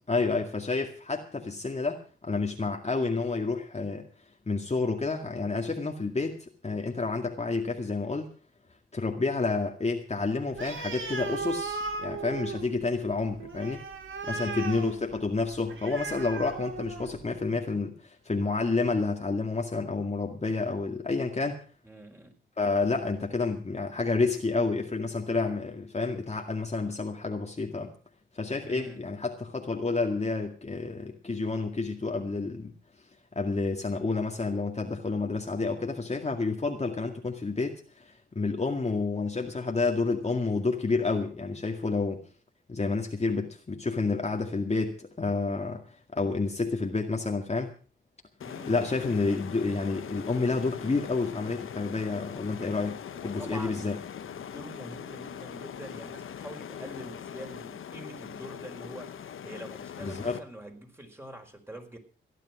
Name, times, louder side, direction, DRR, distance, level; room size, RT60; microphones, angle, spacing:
voice 1, 0.1-4.1 4.5-6.4 6.6-8.3 8.9-13.8 14.2-21.6 22.6-27.9 28.3-32.7 33.4-42.2 42.7-47.7 48.7-54.0 60.0-60.4, left 3 dB, 30° left, 2 dB, 2.1 m, -29 dB
Animal, 10.5-17.3, right 4 dB, 75° right, 3.1 m, -37 dB
voice 2, 14.3-14.6 21.8-22.3 28.6-29.1 48.4-48.8 53.1-62.0, right 1 dB, 10° right, 3 dB, 4.8 m, -45 dB
sound 1, 48.4-60.4, left 8 dB, 85° left, 1.0 m, -41 dB
16.0 x 11.0 x 6.1 m, 0.40 s
cardioid pair, 75°, 21 cm